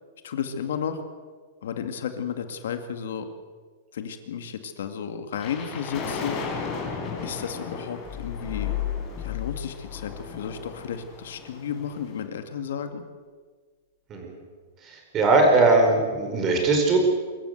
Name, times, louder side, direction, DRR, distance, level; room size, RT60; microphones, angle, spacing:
voice 1, 0.2-1.0 1.6-3.3 3.9-6.4 7.2-8.7 9.2-13.0, left 7 dB, 75° left, 8 dB, 2.1 m, -33 dB
sound 1, 5.4-12.2, left 4 dB, 30° left, 4.7 m, -36 dB
sound 2, 8.0-10.8, left 12 dB, ahead, 5.5 m, -33 dB
voice 2, 14.8-17.0, right 3 dB, 25° right, 3 dB, 4.9 m, -20 dB
24.0 x 14.0 x 8.1 m, 1.5 s
supercardioid pair, 155°, 0 cm